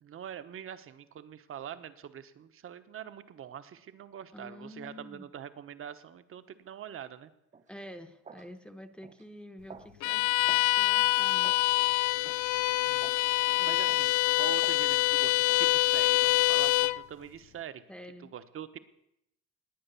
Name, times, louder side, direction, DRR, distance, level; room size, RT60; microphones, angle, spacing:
voice 1, 0.0-7.3 12.9-13.1 13.6-17.8 18.3-18.8, right 9 dB, 45° right, 12 dB, 1.1 m, -44 dB
voice 2, 4.3-5.3 7.7-11.5 13.6-14.0 17.9-18.3, left 1 dB, 5° left, 7 dB, 1.0 m, -48 dB
sound 1, 7.5-7.7 8.2-8.5 9.0-9.2 9.7-9.9 10.5-10.7 11.4-11.6 12.2-12.4 13.0-13.3 13.9-14.1 14.6-14.9 15.5-15.7 16.4-16.6, right 5 dB, 25° right, 0.8 m, -49 dB
Bowed string instrument, 10.0-17.0, left 20 dB, 80° left, 0.5 m, -25 dB
19.5 x 9.1 x 7.0 m, 0.83 s
cardioid pair, 135°, 30 cm